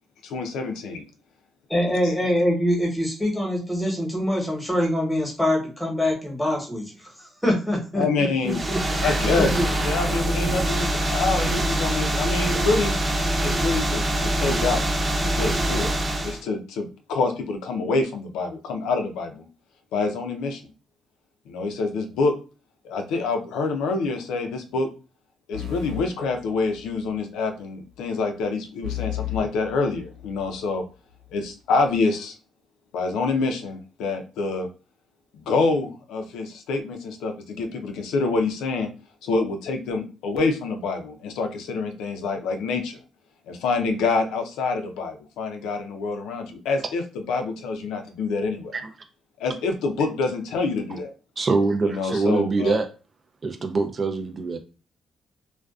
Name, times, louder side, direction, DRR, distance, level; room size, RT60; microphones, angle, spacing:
voice 1, 0.2-1.0 7.9-8.6 9.0-9.5 9.8-12.9 13.4-14.8 15.2-16.0 16.2-19.5 19.9-20.6 21.5-22.3 22.8-24.9 25.5-30.8 31.3-32.3 32.9-34.7 35.4-38.9 39.2-43.0 43.5-47.0 47.3-48.7 49.4-51.1 51.8-52.8, left 3 dB, 90° left, 0.5 m, -26 dB
voice 2, 1.7-9.7, equal, 5° left, 1.0 m, -25 dB
sound 1, 8.5-16.4, right 1 dB, 25° right, 0.8 m, -24 dB
sound 2, 25.5-27.1 28.8-30.6, left 11 dB, 90° right, 1.0 m, -34 dB
voice 3, 51.4-52.9 53.4-54.6, right 3 dB, 40° right, 0.4 m, -23 dB
2.5 x 2.2 x 2.3 m
cardioid pair, 90°, 0 cm